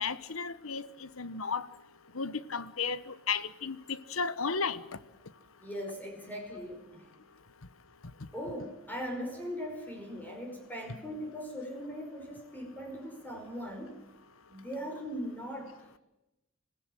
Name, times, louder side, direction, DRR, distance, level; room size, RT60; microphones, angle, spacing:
voice 1, 0.0-1.7 2.1-4.8, left 5 dB, 85° left, 15 dB, 1.1 m, -34 dB
voice 2, 5.6-7.1 8.3-14.0 14.5-15.7, equal, 10° left, 2 dB, 4.9 m, -40 dB
26.0 x 17.0 x 7.7 m, 0.95 s
head